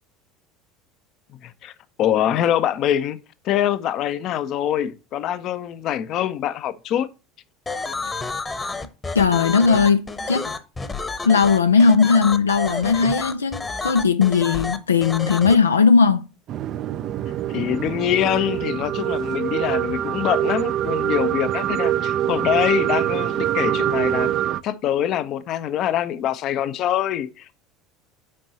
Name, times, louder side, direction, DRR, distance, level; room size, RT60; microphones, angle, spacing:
voice 1, 1.4-1.7 2.0-3.2 3.4-7.1 17.5-24.3 24.6-27.5, left 11 dB, 50° left, 0.7 m, -24 dB
sound 1, 7.7-15.5, left 3 dB, 20° left, 1.0 m, -29 dB
voice 2, 9.1-10.5 11.2-16.3, left 5 dB, 85° left, 0.4 m, -18 dB
sound 2, 16.5-24.6, right 11 dB, 45° right, 0.4 m, -24 dB
8.6 x 5.3 x 2.8 m
figure-of-eight pair, 75°, 0 cm